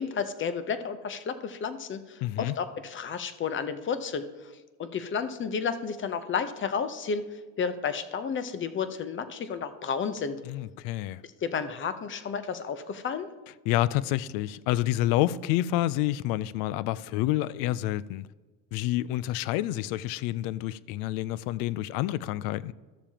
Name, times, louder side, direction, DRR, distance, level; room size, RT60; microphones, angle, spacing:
voice 1, 0.0-4.5 4.8-10.4 11.2-13.3, left 6 dB, 35° left, 0.8 m, -32 dB
voice 2, 2.2-2.5 10.5-11.2 13.7-18.3 18.7-22.7, left 15 dB, 75° left, 0.5 m, -28 dB
13.5 x 6.9 x 2.9 m
supercardioid pair, 100°, 35 cm